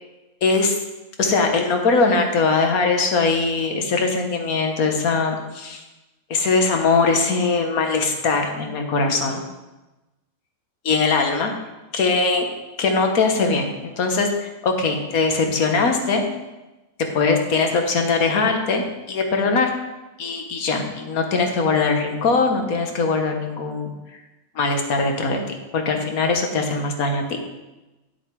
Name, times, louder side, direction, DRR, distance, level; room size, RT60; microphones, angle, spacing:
voice 1, 0.4-0.8 1.2-5.8 6.3-9.4 10.8-11.5 11.9-12.5 12.8-16.3 17.1-19.7 20.2-23.9 24.5-27.4, left 4 dB, 90° left, 4 dB, 1.7 m, -21 dB
9.4 x 7.2 x 4.6 m, 1.1 s
omnidirectional pair, 1.5 m